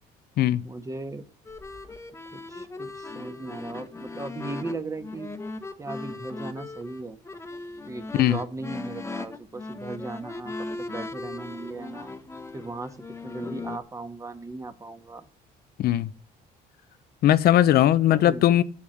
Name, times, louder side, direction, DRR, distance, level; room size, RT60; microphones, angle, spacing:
voice 1, 0.6-1.2 2.3-5.3 5.8-7.2 7.9-12.1 12.5-13.0 13.2-15.2 18.0-18.4, right 3 dB, 20° right, 1.4 m, -37 dB
sound 1, 1.5-13.8, left 3 dB, 15° left, 1.2 m, -38 dB
voice 2, 15.8-16.1 17.2-18.6, left 12 dB, 65° left, 0.7 m, -19 dB
9.0 x 7.3 x 7.8 m
cardioid pair, 110°, 17 cm